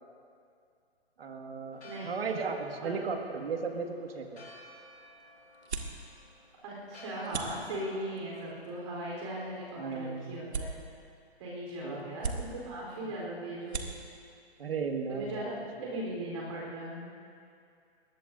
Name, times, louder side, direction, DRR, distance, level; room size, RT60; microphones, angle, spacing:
voice 1, 1.2-4.4 9.8-10.3 11.8-12.0 13.0-13.1 14.6-15.5 15.8-15.9, right 5 dB, 65° right, 3 dB, 1.9 m, -35 dB
Church bell, 1.7-10.6, left 1 dB, 85° left, 3.0 m, -55 dB
sound 1, 4.2-15.8, right 4 dB, 85° right, 1.9 m, -44 dB
voice 2, 6.6-10.7 11.4-13.8 15.1-15.5 15.8-17.1, right 1 dB, 30° right, -4 dB, 3.8 m, -38 dB
21.5 x 19.0 x 2.6 m, 2.4 s
hypercardioid pair, 170°, 32 cm